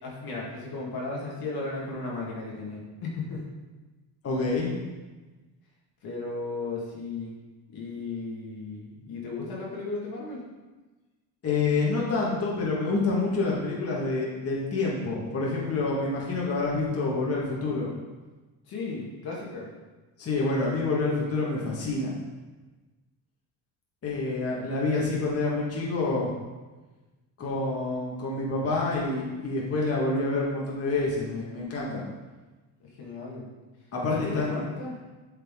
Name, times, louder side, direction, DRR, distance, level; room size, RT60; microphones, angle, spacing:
voice 1, 0.0-3.4 6.0-7.3 7.7-10.4 18.7-19.7 24.6-24.7 32.8-33.5 34.1-34.9, left 3 dB, 55° left, -3 dB, 1.9 m, -35 dB
voice 2, 4.2-4.7 11.4-17.9 20.2-22.1 24.0-26.3 27.4-32.0 33.9-34.7, left 3 dB, 35° left, -4 dB, 1.8 m, -27 dB
7.7 x 5.5 x 3.7 m, 1.2 s
cardioid pair, 125°, 43 cm